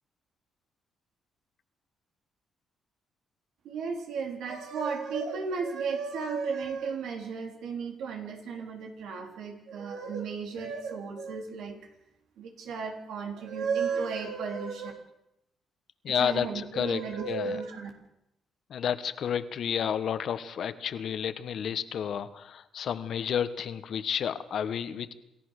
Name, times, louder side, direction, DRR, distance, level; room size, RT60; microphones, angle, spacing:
voice 1, 3.6-11.8 12.4-14.9 16.2-17.9, right 5 dB, 80° right, 3 dB, 3.8 m, -34 dB
voice 2, 16.0-17.6 18.7-25.1, left 8 dB, 65° left, 12 dB, 1.4 m, -31 dB
27.5 x 14.5 x 6.6 m, 0.86 s
cardioid pair, 90°, 0 cm